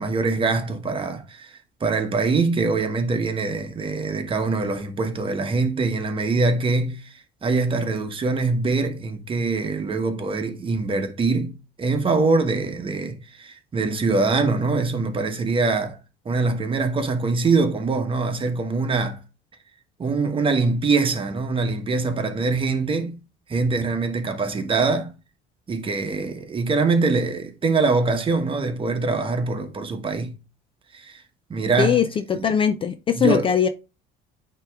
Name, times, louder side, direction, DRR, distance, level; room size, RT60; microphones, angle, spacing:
voice 1, 0.0-16.0 16.2-19.2 20.0-23.2 23.5-25.1 25.7-30.3 30.9-31.2 31.5-32.0 32.3-32.5 33.1-33.5, right 3 dB, 25° right, 1.1 m, -23 dB
voice 2, 31.8-33.7, left 8 dB, 30° left, 0.4 m, -21 dB
8.9 x 3.0 x 3.5 m
cardioid pair, 130°, 19 cm